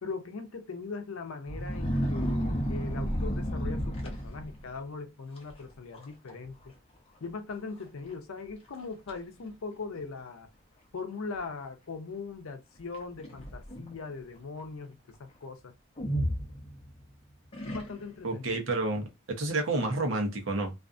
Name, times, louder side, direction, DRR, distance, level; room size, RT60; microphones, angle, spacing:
voice 1, 0.0-6.7 7.2-10.5 10.9-15.7 17.6-18.6, left 4 dB, 85° left, 0.5 m, -40 dB
sound 1, 1.5-4.7 5.4-5.6 5.9-6.4 6.6-6.7 7.5-7.6 8.1-8.2 8.7-9.2 10.0-10.1 12.9-13.9 16.0-17.0 17.5-18.3, equal, 30° left, 0.7 m, -32 dB
voice 2, 18.2-19.0 19.4-20.7, right 2 dB, 70° right, 0.7 m, -29 dB
2.4 x 2.3 x 2.5 m
head